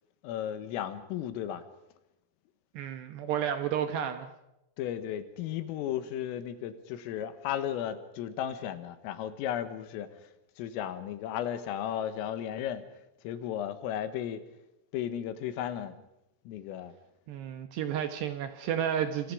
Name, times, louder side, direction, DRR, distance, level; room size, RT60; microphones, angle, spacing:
voice 1, 0.2-1.6 4.8-10.1 10.6-12.9 13.2-14.5 14.9-16.0 16.5-16.9, left 10 dB, 85° left, 11 dB, 4.0 m, -34 dB
voice 2, 2.7-4.3 17.3-19.3, right 9 dB, 75° right, 8 dB, 2.7 m, -31 dB
27.0 x 26.5 x 5.1 m, 0.89 s
omnidirectional pair, 5.9 m